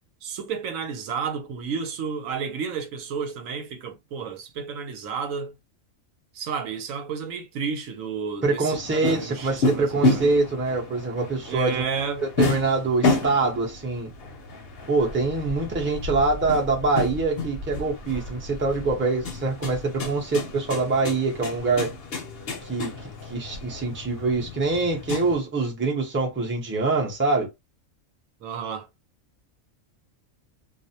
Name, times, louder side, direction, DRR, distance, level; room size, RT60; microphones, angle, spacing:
voice 1, 0.2-5.5 6.3-10.2 11.5-12.3 28.4-28.9, right 6 dB, 80° right, 1.0 m, -31 dB
voice 2, 8.4-11.8 12.4-14.1 14.9-21.9 22.6-22.9 23.3-27.5, right 3 dB, 15° right, 0.5 m, -24 dB
sound 1, 8.7-25.4, left 2 dB, 55° left, 0.8 m, -30 dB
2.5 x 2.0 x 2.7 m
omnidirectional pair, 1.4 m